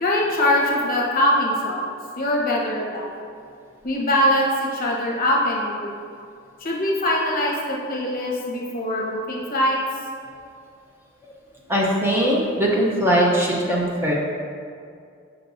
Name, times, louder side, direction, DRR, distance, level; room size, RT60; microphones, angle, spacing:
voice 1, 0.0-1.8 2.2-3.1 3.8-6.0 6.6-9.8, left 1 dB, 45° left, -3 dB, 1.0 m, -22 dB
voice 2, 11.7-14.1, right 1 dB, 10° right, -4 dB, 0.6 m, -20 dB
6.3 x 5.8 x 2.6 m, 2.3 s
head